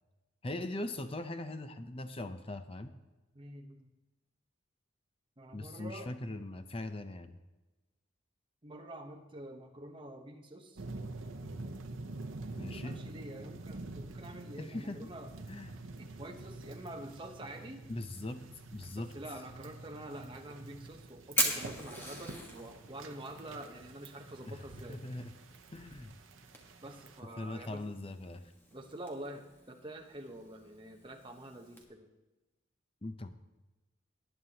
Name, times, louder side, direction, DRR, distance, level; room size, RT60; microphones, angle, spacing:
voice 1, 0.4-2.9 5.5-7.4 12.6-13.0 14.6-15.1 15.5-15.8 17.9-18.4 18.7-19.1 24.4-24.6 24.9-25.3 25.7-26.2 27.4-28.4 33.0-33.3, left 2 dB, 30° left, 9 dB, 0.6 m, -40 dB
voice 2, 3.3-3.9 5.4-6.1 8.6-10.8 12.6-15.3 16.0-17.8 19.0-25.0 26.8-27.8 28.7-32.1, right 1 dB, 25° right, 3 dB, 1.0 m, -47 dB
sound 1, 10.8-27.2, right 2 dB, 75° right, 0.8 m, -47 dB
Fire, 20.3-31.8, equal, 10° left, 1.4 m, -42 dB
18.5 x 9.5 x 2.9 m, 1.1 s
head